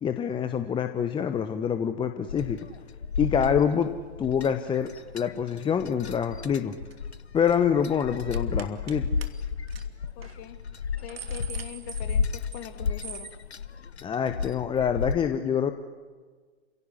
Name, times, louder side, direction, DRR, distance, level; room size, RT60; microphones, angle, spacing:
voice 1, 0.0-2.6 3.2-3.9 4.2-4.9 5.1-6.8 7.3-9.1 14.0-15.7, left 8 dB, 15° left, 9 dB, 1.2 m, -26 dB
sound 1, 2.3-15.1, left 5 dB, 80° left, 1.4 m, -33 dB
sound 2, 6.9-7.1 7.4-7.7 8.3-8.9 9.2-9.3 9.7-9.8 10.2-10.3 10.8-12.7 13.0-13.4, right 6 dB, 65° right, 2.8 m, -42 dB
voice 2, 10.2-10.6 11.0-13.3, left 12 dB, 35° left, 8 dB, 2.7 m, -42 dB
29.5 x 17.0 x 10.0 m, 1.4 s
figure-of-eight pair, 110°, 32 cm